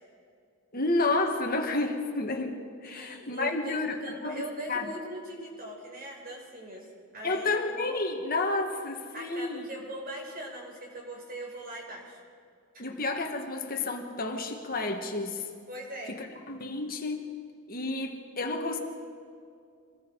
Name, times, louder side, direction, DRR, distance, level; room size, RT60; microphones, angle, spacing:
voice 1, 0.7-4.9 7.2-9.7 12.8-15.4 16.1-17.3 17.7-18.8, left 2 dB, 40° left, 4 dB, 2.0 m, -31 dB
voice 2, 2.8-6.9 7.1-7.6 9.1-12.2 12.7-13.0 15.7-16.2, right 1 dB, 40° right, 0 dB, 5.2 m, -41 dB
27.0 x 20.5 x 4.9 m, 2.3 s
head